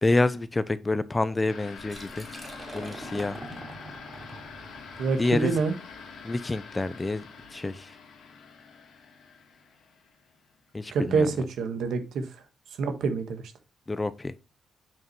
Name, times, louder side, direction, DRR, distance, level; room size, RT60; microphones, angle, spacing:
voice 1, 0.0-2.3 2.7-3.4 5.2-5.6 6.2-7.2 7.5-8.0 10.7-11.3 13.9-14.3, left 2 dB, 20° left, 0.5 m, -27 dB
sound 1, 1.5-10.5, left 5 dB, 70° left, 1.9 m, -46 dB
Liquid, 1.8-7.5, right 1 dB, 20° right, 2.9 m, -44 dB
voice 2, 5.0-5.7 10.9-12.3 12.8-13.5, right 4 dB, 70° right, 1.5 m, -27 dB
7.4 x 5.1 x 3.1 m
cardioid pair, 90°, 0 cm